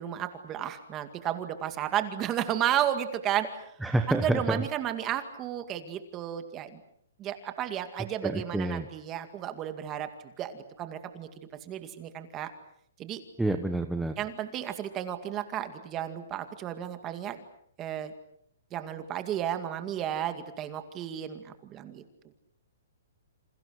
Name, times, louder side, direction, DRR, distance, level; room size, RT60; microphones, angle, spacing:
voice 1, 0.0-3.5 4.1-6.8 7.2-10.1 10.4-11.3 11.6-12.5 13.0-13.2 14.2-17.4 17.8-18.1 18.7-22.0, right 11 dB, 15° right, 8 dB, 2.1 m, -33 dB
voice 2, 3.8-4.7 8.2-8.9 13.4-14.1, right 2 dB, ahead, 5 dB, 1.0 m, -28 dB
29.5 x 27.5 x 6.5 m, 0.70 s
hypercardioid pair, 170°, 0 cm